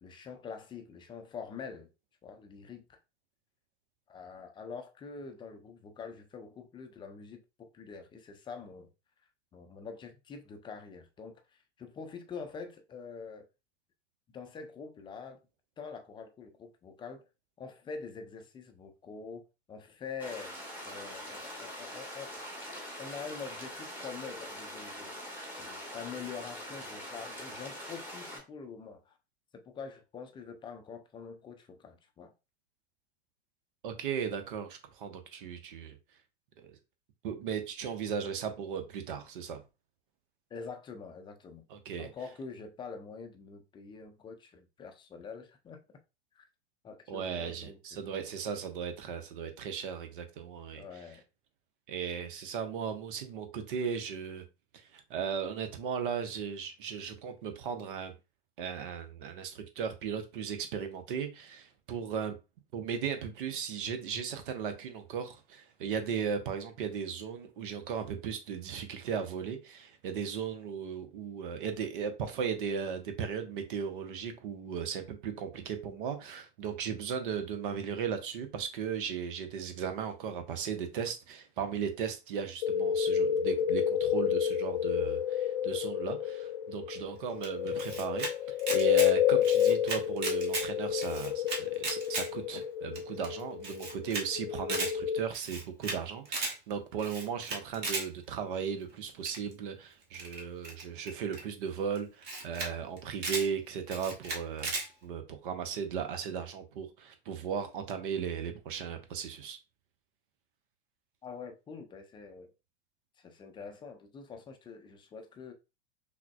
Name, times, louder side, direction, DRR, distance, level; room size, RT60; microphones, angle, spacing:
voice 1, 0.0-1.9 2.2-3.0 4.1-8.9 9.5-13.5 14.3-15.4 15.8-17.2 17.6-19.4 19.7-20.6 20.8-22.5 23.0-25.1 25.6-29.2 29.5-32.3 40.5-41.7 42.0-45.8 46.3-46.5 46.8-48.0 50.7-51.2 111.2-112.5 113.2-115.5, left 5 dB, 15° left, 0.5 m, -45 dB
sound 1, 20.2-28.4, equal, 5° right, 1.1 m, -43 dB
voice 2, 33.8-36.0 37.2-39.6 41.7-42.1 47.1-50.8 51.9-54.4 54.7-58.1 58.6-62.3 62.7-104.7 105.0-109.6, right 7 dB, 55° right, 0.8 m, -36 dB
sound 2, 82.6-95.2, left 9 dB, 55° left, 0.7 m, -30 dB
Camera, 87.4-88.3 88.6-89.1 89.4-90.7 91.0-92.3 92.6-92.7 92.9-93.0 93.2-93.3 93.6-94.2 94.5-94.9 95.3-96.0 96.2-96.5 97.0-98.0 99.2-99.5 100.1-101.4 101.9-102.0 102.2-102.7 103.0-103.5 103.9-104.8, right 3 dB, 30° right, 1.2 m, -35 dB
5.7 x 2.1 x 2.3 m
figure-of-eight pair, 90°, 32 cm